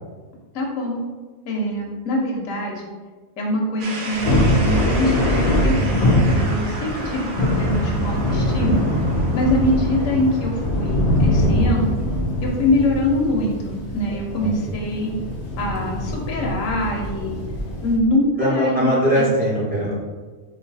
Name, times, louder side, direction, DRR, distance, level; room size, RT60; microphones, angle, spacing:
voice 1, 0.5-1.0 1.4-2.7 3.4-9.1 9.3-11.9 12.4-15.1 15.6-17.4 17.8-19.2, left 1 dB, 70° left, -2 dB, 1.1 m, -24 dB
sound 1, 3.8-13.6, right 2 dB, 55° right, 0.6 m, -35 dB
Thunder, 4.1-18.0, left 1 dB, 45° left, 0.6 m, -22 dB
voice 2, 14.1-14.6 18.4-19.9, equal, 5° right, -8 dB, 1.3 m, -21 dB
3.9 x 2.7 x 4.0 m, 1.4 s
omnidirectional pair, 1.4 m